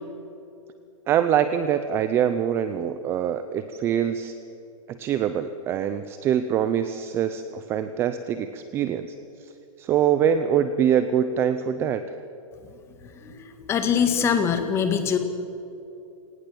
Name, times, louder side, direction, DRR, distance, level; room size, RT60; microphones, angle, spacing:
voice 1, 1.1-4.3 4.9-9.1 9.8-12.1, right 9 dB, 15° right, 11 dB, 0.5 m, -24 dB
voice 2, 13.0-15.2, left 7 dB, 15° left, 8 dB, 1.7 m, -24 dB
29.0 x 19.0 x 7.7 m, 2.7 s
hypercardioid pair, 165°, 18 cm